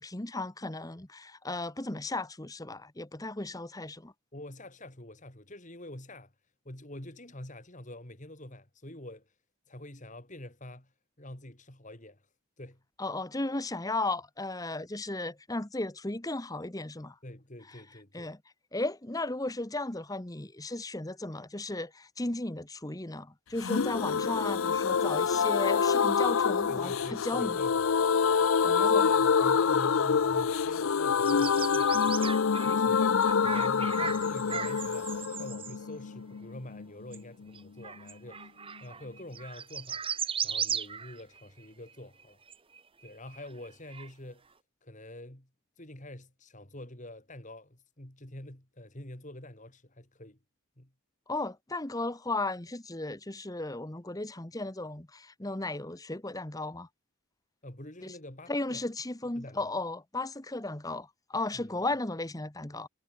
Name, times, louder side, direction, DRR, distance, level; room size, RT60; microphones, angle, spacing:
voice 1, 0.0-4.1 13.0-17.1 18.1-18.4 18.7-27.6 28.6-29.1 51.3-56.9 58.0-58.1 58.5-62.9, left 2 dB, 15° left, 1.0 m, -35 dB
voice 2, 4.3-6.3 6.6-9.3 9.7-10.9 11.2-12.2 12.6-12.8 17.2-18.3 26.7-27.9 28.7-38.5 38.8-40.0 40.4-42.4 43.0-44.4 44.8-45.5 45.8-50.4 50.8-50.9 57.6-58.8 59.3-59.7 61.5-61.8, left 1 dB, 35° left, 2.9 m, -46 dB
sound 1, 23.6-37.2 37.5-37.6 37.8-37.9, left 6 dB, 65° left, 0.5 m, -26 dB
sound 2, 31.2-35.8 37.1-37.2 37.5-41.7 42.2-42.3 42.5-44.1, right 7 dB, 25° right, 1.3 m, -37 dB
head